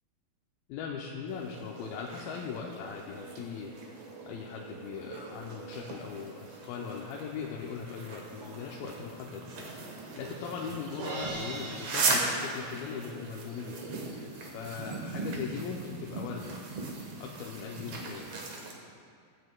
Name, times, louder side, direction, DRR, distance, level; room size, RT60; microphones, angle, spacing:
voice 1, 0.7-3.7 4.3-13.8 14.1-16.6 17.2-18.3, left 6 dB, 85° left, -1 dB, 2.5 m, -40 dB
sound 1, 1.3-18.7, right 3 dB, 60° right, 1.6 m, -38 dB
Crash cymbal, 11.0-13.3, right 3 dB, 80° right, 3.2 m, -40 dB
23.0 x 8.7 x 2.2 m, 2.2 s
omnidirectional pair, 4.2 m